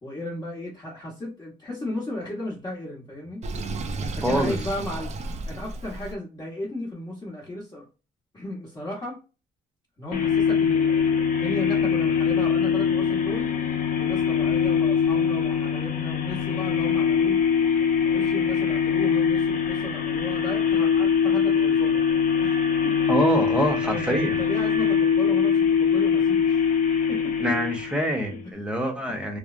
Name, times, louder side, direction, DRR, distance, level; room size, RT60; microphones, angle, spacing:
voice 1, 0.0-3.4 4.0-7.9 8.3-9.2 10.0-13.5 14.0-17.4 18.0-22.0 22.4-22.9 23.8-26.6 27.1-27.3, left 1 dB, 25° left, 1.1 m, -35 dB
Sink (filling or washing), 3.4-6.2, right 2 dB, 45° right, 0.5 m, -33 dB
voice 2, 4.2-4.6 23.1-24.4 27.4-29.4, equal, 5° right, 0.9 m, -25 dB
sound 1, 10.1-28.4, left 7 dB, 60° left, 0.7 m, -23 dB
3.1 x 2.1 x 2.4 m
cardioid pair, 105°, 16 cm